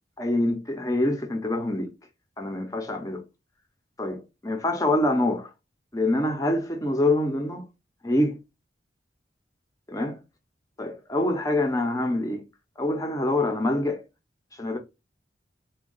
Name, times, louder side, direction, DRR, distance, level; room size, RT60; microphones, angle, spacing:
voice 1, 0.2-1.9 2.4-3.2 4.0-5.5 5.9-7.6 8.0-8.4 9.9-10.2 10.8-12.4 12.8-14.0 14.6-14.8, left 1 dB, 20° left, 0.7 m, -25 dB
3.6 x 2.3 x 3.8 m
head